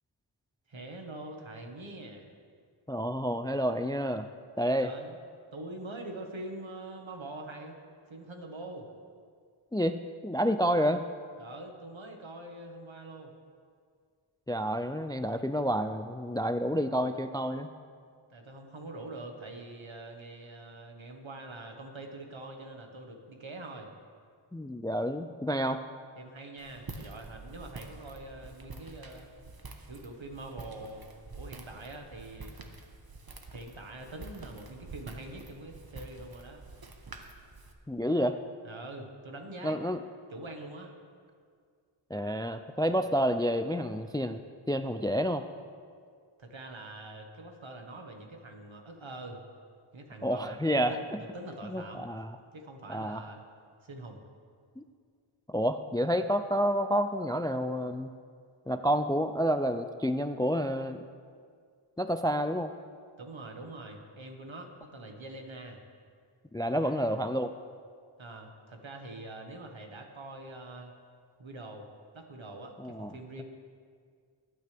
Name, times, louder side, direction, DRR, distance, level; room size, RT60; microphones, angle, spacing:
voice 1, 0.7-2.3 4.8-5.2 5.5-7.7 8.1-8.9 11.4-13.3 18.3-23.9 26.2-29.3 29.9-31.1 31.3-32.5 33.5-36.6 38.6-39.8 40.3-40.9 46.4-49.4 49.9-52.0 52.5-53.4 53.8-54.2 63.2-65.8 66.7-67.1 68.2-70.9 71.4-71.9 72.1-73.4, right 2 dB, 65° right, 3 dB, 1.6 m, -44 dB
voice 2, 2.9-4.3 4.6-4.9 9.7-10.0 10.2-11.0 14.5-17.7 24.5-25.8 37.9-38.4 39.6-40.0 42.1-44.4 44.7-45.4 50.2-51.0 51.7-52.3 52.9-53.2 54.8-54.9 55.5-58.1 58.7-61.0 62.0-62.7 66.5-67.5 72.8-73.4, equal, 10° left, 10 dB, 0.3 m, -29 dB
Walk footsteps, 26.6-37.7, right 3 dB, 45° right, 1.1 m, -47 dB
20.5 x 9.3 x 3.4 m, 2.1 s
wide cardioid pair, 60°, 49 cm